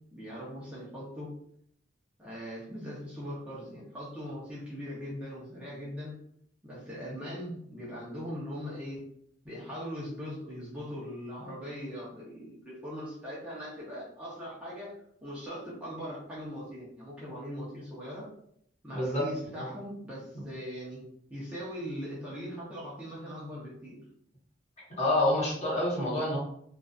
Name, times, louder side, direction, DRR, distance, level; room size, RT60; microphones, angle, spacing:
voice 1, 0.1-1.3 2.2-6.2 6.6-9.0 9.4-15.0 15.2-18.3 18.8-21.0 21.3-24.0, equal, 5° right, -8 dB, 0.7 m, -40 dB
voice 2, 18.9-19.3 19.6-19.7 25.0-26.4, left 1 dB, 35° left, -6 dB, 1.0 m, -27 dB
2.5 x 2.3 x 2.3 m, 0.68 s
head